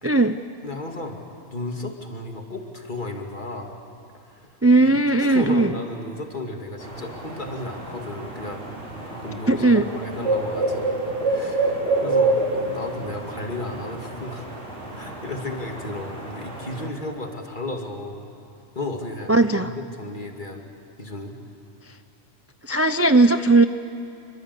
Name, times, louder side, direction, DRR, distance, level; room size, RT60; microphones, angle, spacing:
voice 1, 0.0-0.4 4.6-5.7 9.5-9.8 19.3-19.7 22.7-23.6, right 2 dB, 20° right, 10 dB, 0.5 m, -17 dB
voice 2, 0.6-1.2 1.5-3.8 4.2-4.5 4.8-8.6 9.1-11.7 12.0-14.5 14.9-18.2 18.7-20.7 21.0-21.4, left 2 dB, 40° left, 2 dB, 2.8 m, -34 dB
sound 1, 6.8-16.9, right 2 dB, 65° right, 4.9 m, -28 dB
27.0 x 24.5 x 8.4 m, 2.9 s
omnidirectional pair, 1.3 m